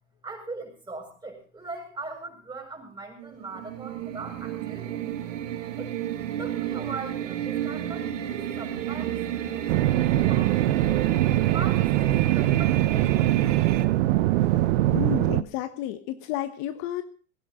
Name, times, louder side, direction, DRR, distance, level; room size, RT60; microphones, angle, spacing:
voice 1, 0.2-5.1 5.8-6.0 6.4-10.7 11.4-13.7, right 3 dB, 10° right, 2 dB, 6.8 m, -40 dB
sound 1, 3.2-13.9, right 10 dB, 80° right, 2.3 m, -32 dB
sound 2, 9.7-15.4, right 15 dB, 65° right, 1.0 m, -22 dB
voice 2, 14.9-17.0, left 13 dB, 50° left, 9 dB, 1.4 m, -31 dB
17.0 x 15.5 x 3.8 m, 0.41 s
supercardioid pair, 125°, 37 cm